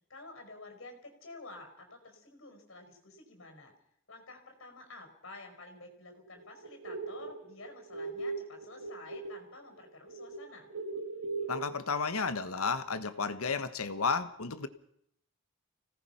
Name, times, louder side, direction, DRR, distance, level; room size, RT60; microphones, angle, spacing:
voice 1, 0.1-3.7 4.1-10.7, left 2 dB, 65° left, 5 dB, 5.2 m, -50 dB
sound 1, 6.4-9.5 9.8-11.7, right 3 dB, 90° right, 2.0 m, -39 dB
voice 2, 11.5-14.7, left 4 dB, 85° left, 12 dB, 1.3 m, -32 dB
25.5 x 18.0 x 5.7 m, 0.70 s
head